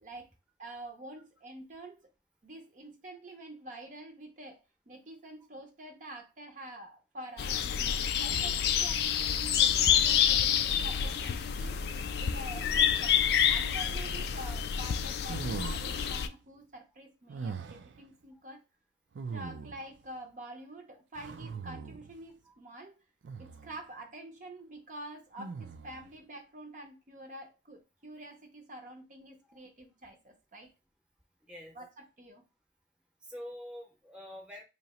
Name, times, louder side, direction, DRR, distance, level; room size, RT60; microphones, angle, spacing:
voice 1, 0.6-2.0 2.4-7.6 8.2-11.8 12.2-13.2 13.5-18.6 19.3-23.0 23.4-30.7 31.7-32.4, right 1 dB, 45° right, 0.6 m, -47 dB
Birdsounds and bumblebee, 7.4-16.3, left 8 dB, 60° left, 0.3 m, -28 dB
sound 1, 15.2-16.2 17.3-18.0 19.1-20.0 21.1-22.2 23.2-23.8 25.4-26.1, right 5 dB, 85° right, 0.4 m, -41 dB
voice 2, 33.2-34.6, left 1 dB, 5° right, 0.7 m, -46 dB
2.9 x 2.8 x 4.1 m
head